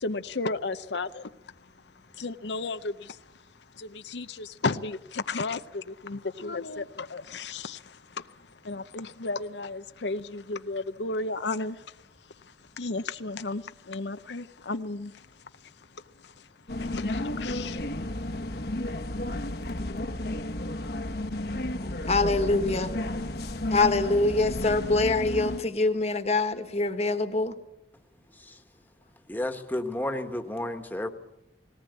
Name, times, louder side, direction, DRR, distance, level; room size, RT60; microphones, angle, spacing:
voice 1, 0.0-1.3 2.2-3.2 3.8-8.3 8.6-11.8 12.8-15.1 16.8-17.8, left 3 dB, 75° left, 0.7 m, -33 dB
sound 1, 16.7-25.6, left 1 dB, 60° left, 1.3 m, -32 dB
voice 2, 21.8-22.9 23.7-27.6, left 3 dB, 35° left, 1.5 m, -25 dB
voice 3, 29.3-31.1, left 1 dB, 10° left, 1.5 m, -32 dB
19.5 x 18.0 x 8.3 m
head